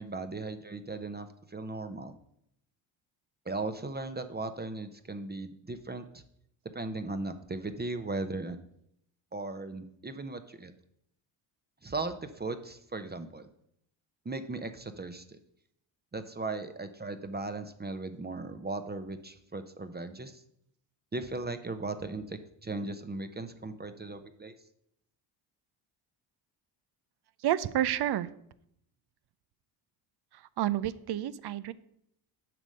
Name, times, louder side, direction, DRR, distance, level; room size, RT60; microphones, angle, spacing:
voice 1, 0.0-2.1 3.5-6.2 6.7-8.6 9.3-10.7 11.8-13.5 14.2-15.4 16.1-20.4 21.1-24.5, right 3 dB, 20° right, 9 dB, 0.8 m, -37 dB
voice 2, 27.4-28.3 30.3-31.7, right 12 dB, 55° right, 16 dB, 0.6 m, -30 dB
7.6 x 5.1 x 6.4 m, 0.74 s
supercardioid pair, 55°, 50 cm